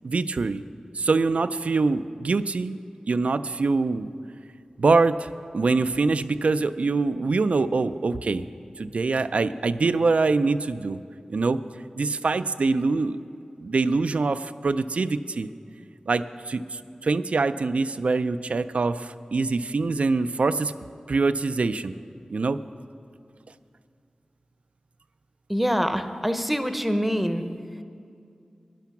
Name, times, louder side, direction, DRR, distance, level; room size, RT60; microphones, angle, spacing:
voice 1, 0.0-0.6 0.9-2.8 3.1-4.1 4.8-5.3 5.5-8.4 8.8-11.0 11.3-11.6 12.0-13.2 13.6-15.5 16.1-20.7 21.1-21.9 22.3-22.6, right 3 dB, 65° right, 12 dB, 0.3 m, -24 dB
voice 2, 25.5-27.4, equal, 5° right, 9 dB, 0.7 m, -25 dB
12.0 x 10.0 x 5.8 m, 2.4 s
wide cardioid pair, 70°, 2 cm